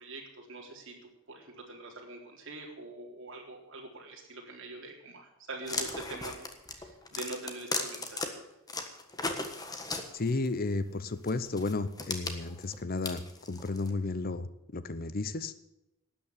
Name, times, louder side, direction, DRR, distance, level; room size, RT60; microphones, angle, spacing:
voice 1, 0.0-8.3, right 2 dB, 60° right, 0 dB, 3.8 m, -44 dB
sound 1, 5.6-8.3 8.7-10.5 11.3-13.9, left 3 dB, 20° left, 1.4 m, -36 dB
voice 2, 10.1-13.2 13.5-15.5, left 3 dB, 45° left, 14 dB, 0.7 m, -33 dB
12.5 x 9.4 x 8.2 m, 0.91 s
head